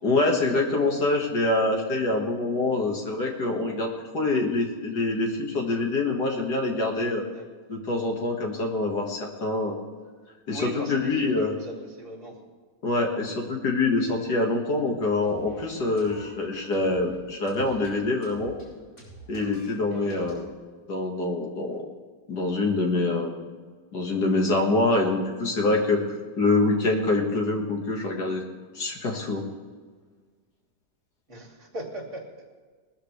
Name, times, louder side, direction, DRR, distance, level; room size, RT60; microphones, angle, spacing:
voice 1, 0.0-7.2 7.7-9.7 10.5-11.5 12.8-18.5 19.3-20.4 20.9-21.8 22.3-23.3 23.9-26.0 26.4-28.4 28.7-29.4, left 2 dB, 90° left, 1 dB, 2.4 m, -25 dB
voice 2, 10.5-12.3 31.3-32.2, equal, 45° right, -1 dB, 3.1 m, -38 dB
sound 1, 15.2-20.4, right 1 dB, 55° left, 5.3 m, -47 dB
20.0 x 13.5 x 3.4 m, 1.5 s
omnidirectional pair, 1.7 m